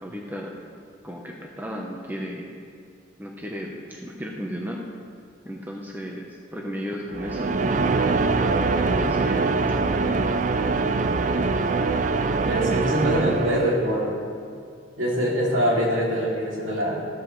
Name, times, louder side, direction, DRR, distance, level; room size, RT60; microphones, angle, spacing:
voice 1, 0.0-0.5 1.0-2.5 3.2-4.8 5.4-8.1 8.7-10.2, equal, 10° right, -1 dB, 0.8 m, -35 dB
sound 1, 7.1-14.0, right 3 dB, 40° right, 0.4 m, -23 dB
voice 2, 12.4-14.2 15.0-17.1, equal, 75° right, -4 dB, 2.6 m, -24 dB
14.5 x 12.5 x 3.2 m, 2.3 s
head